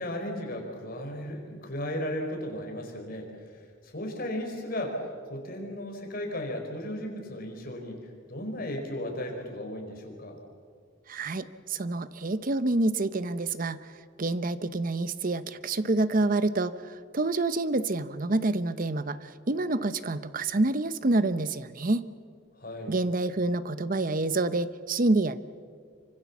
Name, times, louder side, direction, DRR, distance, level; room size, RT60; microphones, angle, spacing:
voice 1, 0.0-8.0 8.3-10.4 22.6-23.0, left 1 dB, 50° left, 2 dB, 4.6 m, -35 dB
voice 2, 11.1-13.8 14.2-22.1 22.9-25.4, right 2 dB, 45° right, 14 dB, 0.8 m, -27 dB
26.5 x 24.5 x 7.3 m, 2.1 s
head